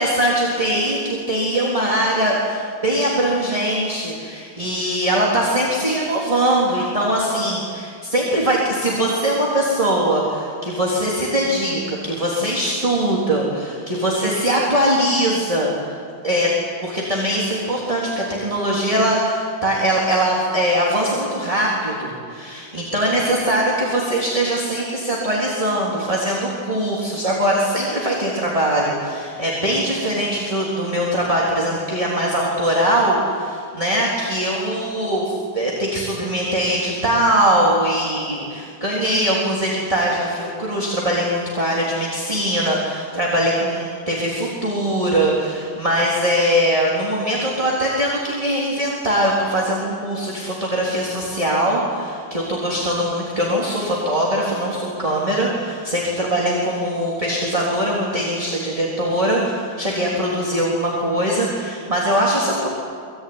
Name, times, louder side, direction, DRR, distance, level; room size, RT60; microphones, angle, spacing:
voice 1, 0.0-16.0 16.2-16.5 16.8-62.7, right 1 dB, 15° right, -4 dB, 3.6 m, -21 dB
24.5 x 22.5 x 9.7 m, 2.2 s
omnidirectional pair, 2.2 m